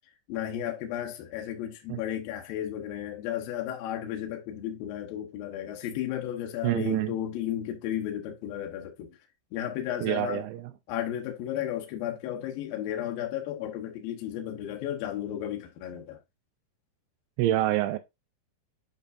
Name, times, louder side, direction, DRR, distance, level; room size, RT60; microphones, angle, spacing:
voice 1, 0.3-9.2 9.5-10.5 10.9-16.2, left 11 dB, 70° left, 2.4 m, -34 dB
voice 2, 6.6-7.1 10.0-10.7 17.4-18.0, right 15 dB, 90° right, 2.3 m, -27 dB
8.5 x 5.2 x 2.5 m
omnidirectional pair, 5.2 m